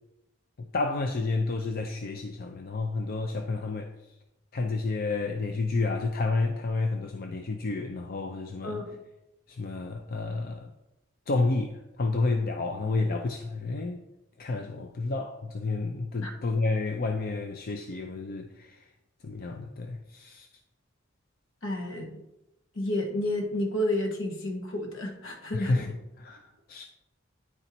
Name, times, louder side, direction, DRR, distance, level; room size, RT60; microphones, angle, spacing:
voice 1, 0.6-3.9 4.5-8.8 9.5-10.7 11.3-14.0 14.4-18.9 19.2-20.5 25.5-26.9, left 3 dB, 50° left, 0.5 m, -30 dB
voice 2, 8.6-9.0 16.2-16.3 21.6-22.2 22.7-25.8, left 1 dB, 70° left, 1.4 m, -31 dB
9.9 x 4.4 x 4.1 m
head